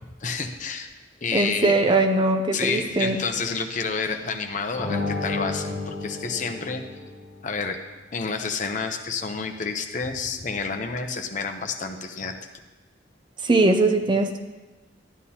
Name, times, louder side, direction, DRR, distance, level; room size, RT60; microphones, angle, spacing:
voice 1, 0.2-0.9 1.2-2.1 2.5-6.8 7.4-7.8 8.1-12.3, left 4 dB, 40° left, 5 dB, 0.7 m, -29 dB
voice 2, 1.3-3.2 13.4-14.4, right 2 dB, 25° right, 5 dB, 0.5 m, -21 dB
sound 1, 4.7-7.4, left 3 dB, 15° left, 3.7 m, -31 dB
12.5 x 10.5 x 2.8 m, 1.2 s
head